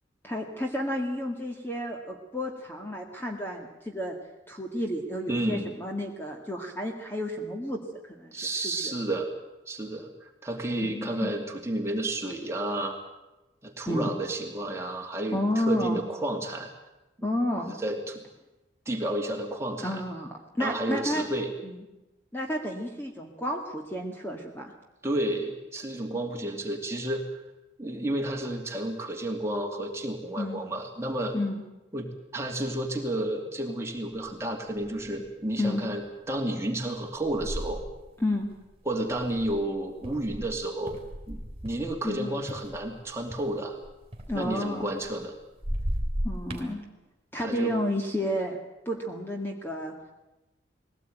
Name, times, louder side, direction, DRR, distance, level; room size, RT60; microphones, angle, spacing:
voice 1, 0.2-4.2 4.5-7.8 8.1-8.9 10.8-11.3 13.9-14.1 15.3-16.0 17.2-17.8 19.8-21.2 21.6-21.8 22.3-24.7 26.1-26.3 30.4-30.6 31.3-31.6 35.6-35.8 38.2-38.5 42.0-42.3 44.3-44.9 46.2-46.8 47.3-48.6 48.9-49.9, left 1 dB, 10° left, 1 dB, 1.9 m, -31 dB
voice 2, 5.3-5.7 8.3-9.3 9.7-13.0 13.6-16.7 17.2-17.3 17.8-18.2 18.9-20.0 20.6-21.5 25.0-27.3 27.8-31.3 31.9-37.8 38.9-41.0 41.3-43.8 44.3-45.3 47.4-47.8, right 1 dB, 15° right, 1 dB, 2.6 m, -31 dB
sound 1, 34.3-34.4 34.8-35.3 35.8-36.0 36.9-42.2 42.5-45.3 45.6-46.7, equal, 30° right, 3.6 m, -36 dB
20.5 x 17.5 x 9.3 m, 1.0 s
head